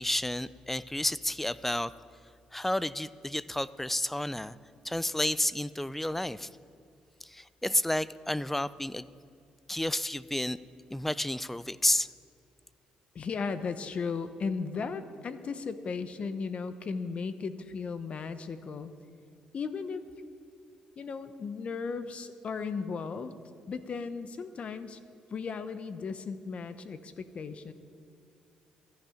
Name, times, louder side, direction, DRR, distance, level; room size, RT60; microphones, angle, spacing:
voice 1, 0.0-1.9 2.5-4.6 4.8-6.5 7.2-9.1 9.7-10.6 10.9-12.1, left 1 dB, 10° left, 18 dB, 0.4 m, -31 dB
voice 2, 13.1-18.9 19.5-20.0 21.0-23.3 23.7-25.0 25.3-27.7, left 5 dB, 50° left, 11 dB, 0.9 m, -36 dB
14.0 x 11.5 x 5.1 m, 2.4 s
supercardioid pair, 65°, 3 cm